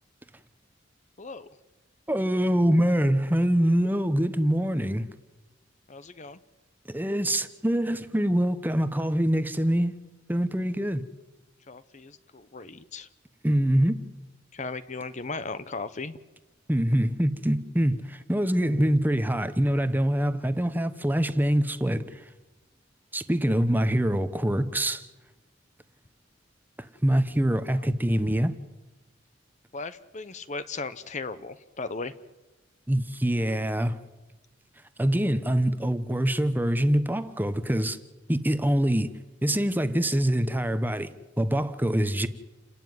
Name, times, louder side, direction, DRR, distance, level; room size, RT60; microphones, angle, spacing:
voice 1, 1.2-1.5 5.9-6.4 11.7-13.1 14.5-16.1 29.7-32.1, left 3 dB, 40° left, 0.9 m, -36 dB
voice 2, 2.1-5.0 6.9-9.9 10.3-11.0 13.4-14.1 16.7-22.2 23.1-25.1 26.8-28.5 32.9-34.0 35.0-38.0 38.3-39.1 39.4-42.3, right 1 dB, 10° right, 0.9 m, -24 dB
29.0 x 12.5 x 9.6 m
head